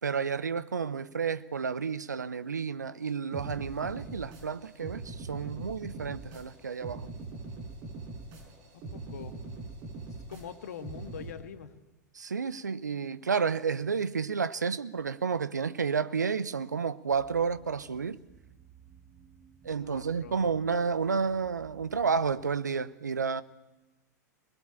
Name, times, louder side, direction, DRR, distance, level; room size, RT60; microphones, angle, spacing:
voice 1, 0.0-7.1 12.1-18.2 19.6-23.4, right 5 dB, 75° right, 0.9 m, -31 dB
sound 1, 3.3-11.3, right 3 dB, 40° right, 6.4 m, -42 dB
voice 2, 8.9-9.3 10.3-11.7 19.8-20.5, left 8 dB, 60° left, 1.8 m, -44 dB
sound 2, 17.1-22.6, right 8 dB, 20° right, 1.2 m, -57 dB
23.0 x 21.0 x 8.8 m
figure-of-eight pair, 95°, 9 cm